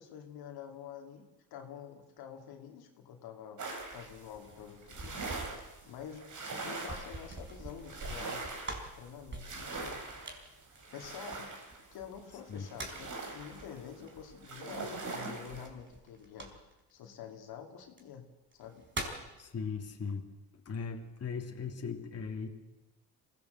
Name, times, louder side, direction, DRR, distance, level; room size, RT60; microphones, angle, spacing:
voice 1, 0.0-3.6 3.9-10.0 10.9-11.6 11.9-16.5 16.9-18.3 18.5-18.9, left 8 dB, 75° left, 2 dB, 2.8 m, -48 dB
sound 1, 3.6-15.7, right 3 dB, 50° right, 4.9 m, -43 dB
sound 2, 4.3-11.7 12.4-13.2 15.6-16.9 17.8-18.0 18.5-19.3, right 2 dB, 30° right, 4.8 m, -45 dB
voice 2, 19.4-20.3 20.6-22.5, left 5 dB, 40° left, 2 dB, 2.9 m, -38 dB
22.5 x 17.0 x 7.9 m, 1.0 s
supercardioid pair, 75°, 38 cm